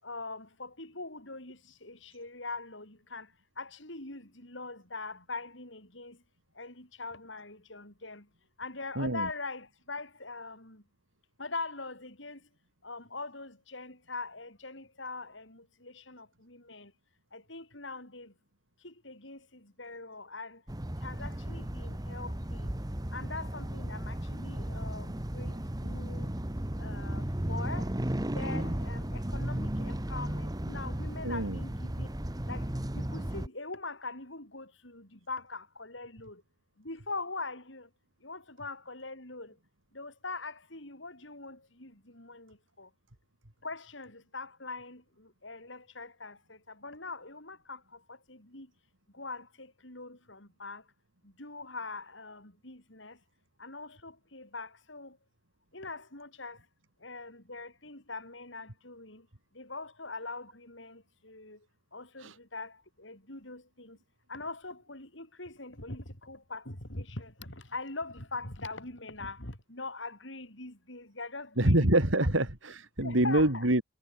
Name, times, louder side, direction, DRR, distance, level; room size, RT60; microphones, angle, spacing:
voice 1, 0.0-3.3 3.6-6.2 6.6-8.3 8.6-10.8 11.4-12.4 12.8-16.9 17.3-18.3 18.8-20.6 21.0-22.7 23.1-26.3 26.8-27.9 28.3-32.1 32.5-32.7 32.9-36.4 36.8-37.9 38.2-39.6 39.9-42.9 43.6-48.7 49.1-50.8 51.2-53.2 53.6-55.2 55.7-56.6 57.0-59.3 59.5-61.6 61.9-64.0 64.3-71.9 72.2-72.3 73.0-73.7, left 3 dB, 65° left, 8.0 m, -42 dB
voice 2, 9.0-9.3 31.2-31.6 62.2-62.4 71.6-73.8, right 1 dB, 75° right, 3.4 m, -26 dB
sound 1, 20.7-33.5, right 1 dB, 20° right, 1.4 m, -35 dB
head